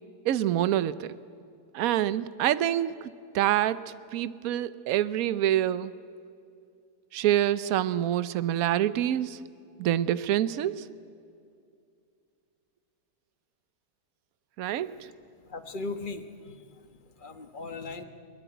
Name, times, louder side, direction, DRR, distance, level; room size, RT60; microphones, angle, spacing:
voice 1, 0.2-1.1 1.7-5.9 7.1-9.4 9.8-10.8 14.6-15.1, right 12 dB, 65° right, 16 dB, 1.0 m, -26 dB
voice 2, 15.4-16.6 16.9-18.0, left 3 dB, 30° left, 8 dB, 1.2 m, -38 dB
21.5 x 20.0 x 9.1 m, 2.4 s
omnidirectional pair, 1.9 m